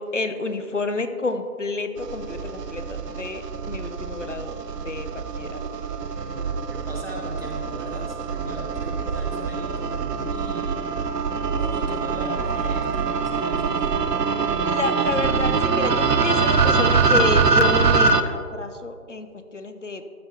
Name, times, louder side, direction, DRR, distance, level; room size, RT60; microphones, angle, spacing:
voice 1, 0.0-4.5 4.8-5.6 14.7-20.0, left 3 dB, 50° left, 8 dB, 0.5 m, -29 dB
sound 1, 2.0-18.2, right 5 dB, 90° right, 0.7 m, -24 dB
voice 2, 6.2-10.8 11.4-14.3, right 1 dB, 40° right, -1 dB, 0.9 m, -37 dB
12.5 x 5.6 x 2.8 m, 2.3 s
figure-of-eight pair, 170°, 46 cm